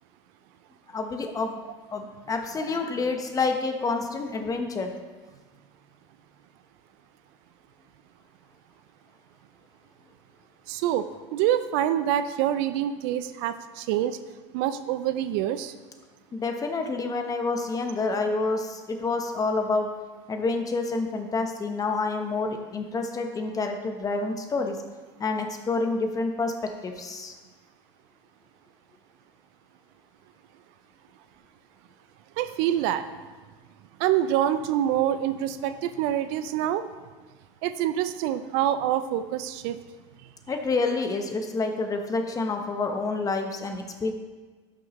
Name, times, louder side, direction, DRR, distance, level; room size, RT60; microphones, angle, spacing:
voice 1, 0.9-1.6 1.9-4.9 16.3-19.9 20.3-24.8 25.2-26.5 26.8-27.3 40.5-44.1, left 3 dB, 25° left, 5 dB, 1.0 m, -28 dB
voice 2, 10.7-14.2 14.5-15.7 32.4-33.1 34.0-36.8 37.6-39.8, right 11 dB, 65° right, 12 dB, 0.5 m, -26 dB
11.5 x 5.9 x 3.1 m, 1.4 s
supercardioid pair, 100°, 15 cm